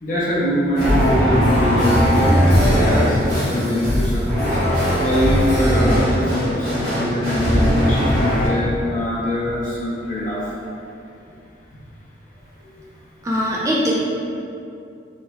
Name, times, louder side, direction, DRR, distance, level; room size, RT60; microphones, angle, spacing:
voice 1, 0.0-4.6 5.0-10.5, left 1 dB, 45° left, -6 dB, 0.6 m, -23 dB
sound 1, 0.7-8.5, equal, 65° right, 1.3 m, -18 dB
voice 2, 13.2-13.9, equal, 15° right, -5 dB, 0.4 m, -21 dB
3.3 x 3.1 x 2.2 m, 2.6 s
head